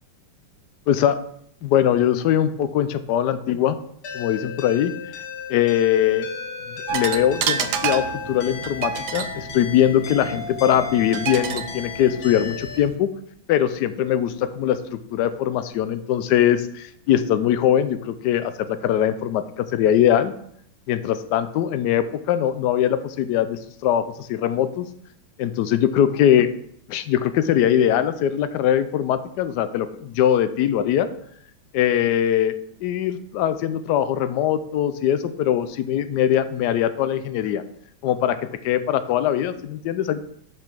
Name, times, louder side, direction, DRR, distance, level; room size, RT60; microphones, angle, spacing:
voice 1, 0.9-1.2 1.6-3.8 4.1-4.9 5.5-6.3 6.9-13.1 13.5-20.3 20.9-24.9 25.4-26.5 26.9-31.1 31.7-37.6 38.0-38.4 38.6-40.2, left 10 dB, 75° left, 12 dB, 1.0 m, -21 dB
sound 1, 4.0-12.8, left 6 dB, 60° left, 1.6 m, -35 dB
sound 2, 6.9-12.9, right 7 dB, 70° right, 1.0 m, -30 dB
6.2 x 5.1 x 6.0 m, 0.70 s
omnidirectional pair, 2.2 m